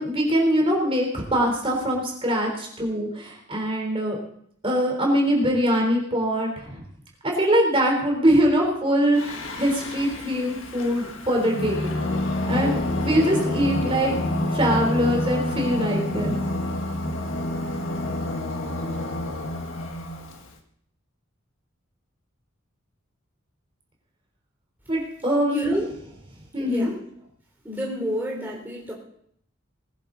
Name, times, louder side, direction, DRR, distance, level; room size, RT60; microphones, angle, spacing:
voice 1, 0.0-4.2 4.6-6.8 7.2-11.9 12.5-14.1 14.5-16.4 24.9-25.7 26.5-26.9, equal, 25° right, 0 dB, 3.8 m, -23 dB
Singing, 9.1-20.5, left 1 dB, 65° left, 1.8 m, -28 dB
voice 2, 25.5-25.9 26.6-26.9 27.7-28.9, equal, 10° right, -3 dB, 3.3 m, -29 dB
21.0 x 10.5 x 4.0 m, 0.67 s
head